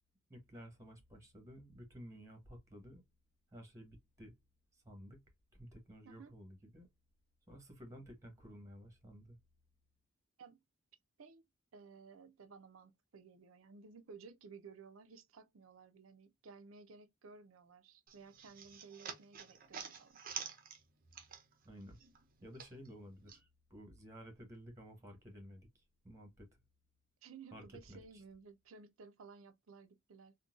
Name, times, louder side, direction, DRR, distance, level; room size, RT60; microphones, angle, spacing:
voice 1, 0.3-3.0 3.5-4.3 4.7-5.2 5.6-6.9 7.5-9.4 21.6-22.0 22.4-26.5 27.5-28.2, equal, 15° right, 1.1 m, -54 dB
voice 2, 11.7-20.2 27.2-30.3, right 5 dB, 90° right, 0.5 m, -56 dB
sound 1, 18.1-21.7 22.0-23.4, right 7 dB, 45° right, 0.6 m, -48 dB
3.7 x 2.2 x 2.3 m
head